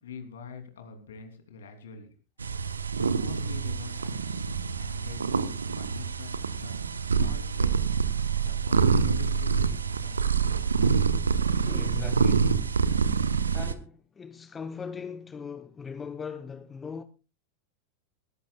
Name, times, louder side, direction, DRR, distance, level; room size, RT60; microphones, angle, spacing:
voice 1, 0.0-2.1 2.9-4.5 4.8-6.8 7.0-8.0 8.4-10.2 10.5-11.1, left 6 dB, 60° left, 3.1 m, -45 dB
sound 1, 2.4-13.7, right 5 dB, 75° right, 1.0 m, -26 dB
voice 2, 11.5-12.8 13.5-17.0, left 6 dB, 20° left, 0.9 m, -39 dB
20.5 x 15.0 x 2.4 m
figure-of-eight pair, 90°, 0 cm